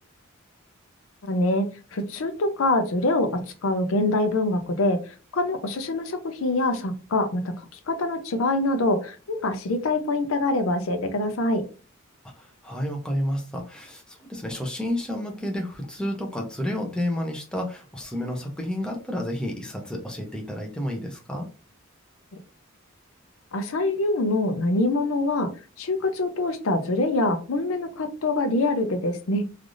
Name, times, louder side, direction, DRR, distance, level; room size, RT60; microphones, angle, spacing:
voice 1, 1.2-1.7 1.9-11.6 23.5-25.5 25.8-29.4, left 2 dB, 70° left, 8 dB, 0.5 m, -25 dB
voice 2, 12.4-21.5, left 1 dB, 5° left, 1 dB, 0.6 m, -30 dB
3.3 x 2.4 x 2.5 m, 0.34 s
head